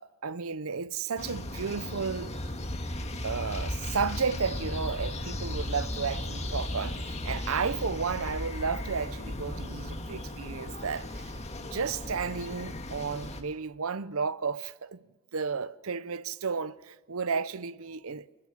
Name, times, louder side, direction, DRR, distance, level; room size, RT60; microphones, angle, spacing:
voice 1, 0.0-2.3 3.2-15.1 15.3-18.3, right 5 dB, 70° right, 0.7 m, -33 dB
sound 1, 1.2-13.4, left 1 dB, 30° left, 1.9 m, -36 dB
27.0 x 21.5 x 7.7 m
head